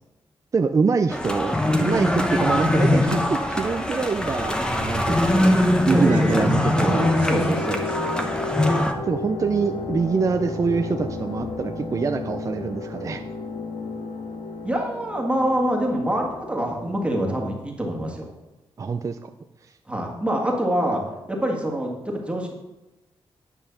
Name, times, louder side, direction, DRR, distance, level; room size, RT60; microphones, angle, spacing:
voice 1, 0.5-5.6 5.9-7.1 9.0-13.2 18.8-19.3 19.6-19.7, right 5 dB, 35° right, 7 dB, 0.5 m, -25 dB
sound 1, 1.1-8.9, left 1 dB, 10° left, 0.9 m, -22 dB
voice 2, 5.9-6.9 7.2-8.4 14.6-18.4 19.9-21.0 21.3-22.5, right 1 dB, 10° right, 0 dB, 1.7 m, -26 dB
sound 2, 6.8-17.2, left 3 dB, 85° left, 1.7 m, -33 dB
10.0 x 5.5 x 7.0 m, 1.0 s
wide cardioid pair, 125°, 10 cm